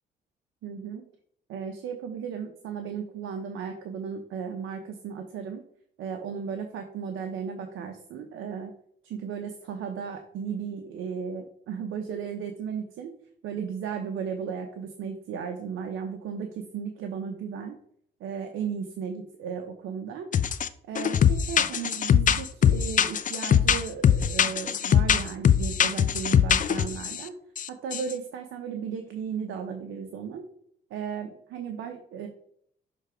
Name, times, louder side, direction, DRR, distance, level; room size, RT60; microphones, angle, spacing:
voice 1, 0.6-1.1 1.5-5.6 6.0-8.7 9.0-13.1 13.4-17.8 18.2-20.3 20.9-27.3 27.7-30.4 30.9-32.3, right 7 dB, 80° right, 5 dB, 0.8 m, -35 dB
sound 1, 20.3-20.7 21.0-27.2 27.6-27.7 27.9-28.1, left 8 dB, 40° left, 0.5 m, -22 dB
6.4 x 3.3 x 4.9 m, 0.65 s
cardioid pair, 90°, 20 cm